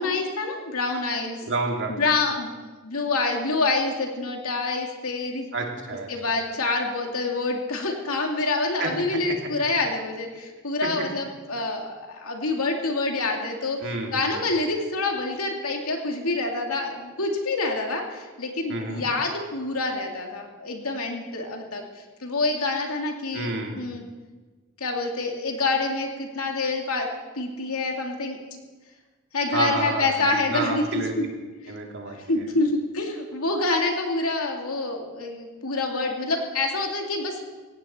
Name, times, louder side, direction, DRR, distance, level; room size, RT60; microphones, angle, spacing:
voice 1, 0.0-1.4 2.0-2.6 2.8-5.5 6.1-13.8 14.1-21.8 22.2-24.0 24.8-27.1 27.3-28.4 29.3-31.3 32.3-37.4, left 3 dB, 80° left, 2 dB, 2.5 m, -27 dB
voice 2, 1.4-2.0 5.5-6.3 8.8-8.9 9.3-9.4 9.7-9.8 13.8-14.5 18.7-19.0 23.3-23.9 29.5-31.1 31.7-32.5, right 3 dB, 60° right, 1 dB, 2.6 m, -30 dB
17.5 x 16.5 x 4.4 m, 1.3 s
head